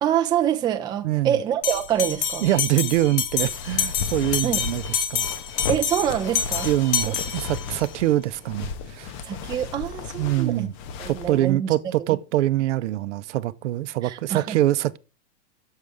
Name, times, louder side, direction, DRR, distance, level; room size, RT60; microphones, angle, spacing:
voice 1, 0.0-2.5 4.4-4.6 5.7-6.7 7.1-7.2 9.2-10.7 11.0-11.7 14.0-14.6, right 10 dB, 15° right, 0.4 m, -25 dB
voice 2, 1.0-1.4 2.4-5.3 6.6-9.1 10.2-10.7 11.1-15.0, right 15 dB, 80° right, 0.6 m, -24 dB
Bell, 1.6-7.9, left 8 dB, 50° left, 1.5 m, -28 dB
sound 1, 3.4-11.5, left 6 dB, 35° left, 0.7 m, -35 dB
6.5 x 6.5 x 3.4 m
supercardioid pair, 145°, 35 cm